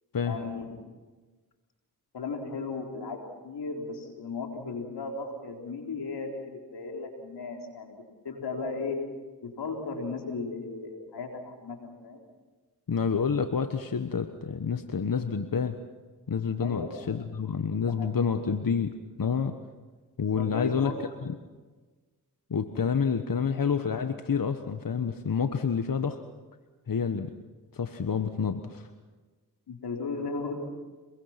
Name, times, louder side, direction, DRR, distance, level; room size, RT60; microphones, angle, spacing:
voice 1, 0.3-0.7 2.1-9.0 9.4-12.2 16.6-17.1 17.9-18.3 20.4-21.1 29.7-30.7, left 4 dB, 90° left, 1 dB, 4.1 m, -36 dB
voice 2, 12.9-15.8 16.3-19.6 20.2-21.4 22.5-26.2 26.9-27.4 27.7-28.9, left 6 dB, 60° left, 8 dB, 1.4 m, -28 dB
26.5 x 22.0 x 5.9 m, 1.3 s
cardioid pair, 40°, 39 cm